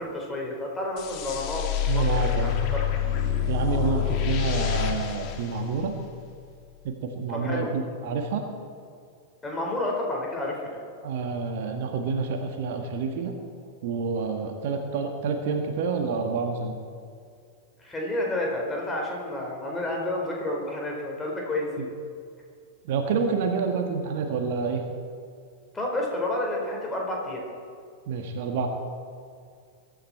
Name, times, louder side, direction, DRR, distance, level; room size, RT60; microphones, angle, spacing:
voice 1, 0.0-2.6 7.3-7.7 9.4-10.8 17.8-21.9 25.7-27.4, left 1 dB, 15° left, -2 dB, 4.8 m, -30 dB
sound 1, 1.0-6.3, left 10 dB, 40° left, 1.8 m, -27 dB
voice 2, 1.9-2.5 3.5-6.0 6.8-8.4 11.0-13.3 13.8-16.8 21.8-21.9 22.8-24.8 28.1-28.7, right 5 dB, 50° right, 4 dB, 1.6 m, -28 dB
23.0 x 12.5 x 4.5 m, 2.2 s
figure-of-eight pair, 95°, 0 cm